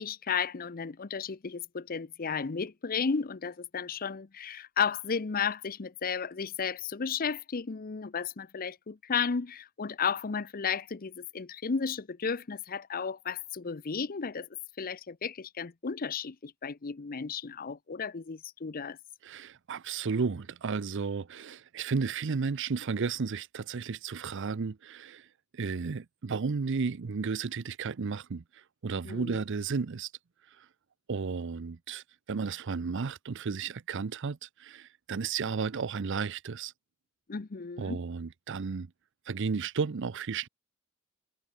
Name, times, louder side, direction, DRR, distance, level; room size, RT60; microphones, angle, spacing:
voice 1, 0.0-14.5 14.8-19.0 29.0-29.4 37.3-38.0, left 6 dB, 45° left, 0.7 m, -33 dB
voice 2, 19.2-25.3 25.5-30.1 30.6-30.7 31.1-36.7 37.8-38.9 39.3-40.5, right 5 dB, 60° right, 0.6 m, -33 dB
head